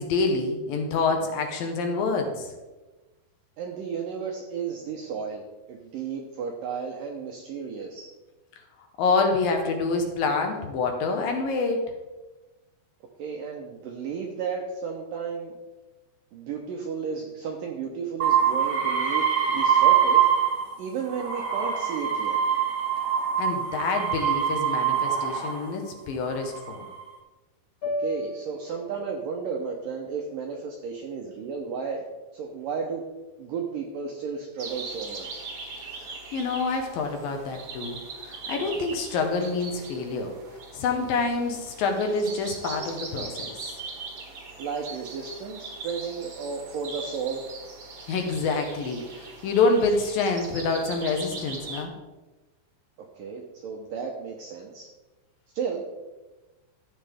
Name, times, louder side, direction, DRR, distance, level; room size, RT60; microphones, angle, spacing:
voice 1, 0.0-2.5 9.0-11.9 23.4-26.9 36.3-38.0 38.2-40.3 40.7-43.7 48.1-51.9, left 3 dB, 70° left, 4 dB, 2.3 m, -27 dB
voice 2, 3.6-8.1 13.2-15.6 16.3-20.3 20.8-22.4 28.0-32.0 32.3-33.0 33.4-35.4 44.6-47.4 53.0-54.9 55.5-55.8, right 6 dB, 80° right, 1 dB, 1.9 m, -33 dB
sound 1, 18.2-20.7 21.1-25.6 26.4-27.0, right 8 dB, 25° right, 1.5 m, -24 dB
sound 2, 27.8-32.1, left 1 dB, 35° left, 2.7 m, -38 dB
sound 3, 34.6-51.8, right 4 dB, 55° right, 1.7 m, -40 dB
13.0 x 8.4 x 3.5 m, 1.1 s
omnidirectional pair, 5.1 m